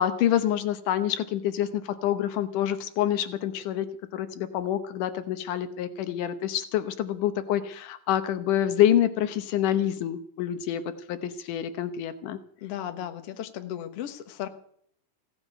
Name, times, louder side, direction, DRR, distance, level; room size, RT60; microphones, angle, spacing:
voice 1, 0.0-10.8 11.1-12.4, left 11 dB, 80° left, 10 dB, 2.5 m, -27 dB
voice 2, 12.6-14.5, left 11 dB, 55° left, 7 dB, 2.0 m, -35 dB
16.0 x 9.7 x 8.0 m, 0.64 s
omnidirectional pair, 3.7 m